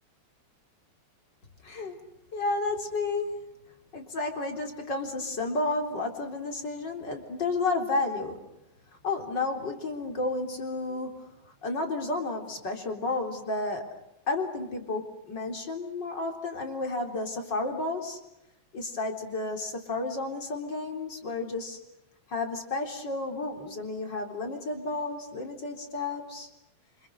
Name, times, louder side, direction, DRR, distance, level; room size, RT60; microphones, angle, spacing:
voice 1, 1.6-2.0 2.3-3.5 3.9-8.5 9.0-13.9 14.3-18.2 18.7-21.8 22.3-26.5, left 3 dB, 35° left, 4 dB, 4.3 m, -32 dB
29.0 x 26.5 x 6.5 m, 0.89 s
omnidirectional pair, 3.3 m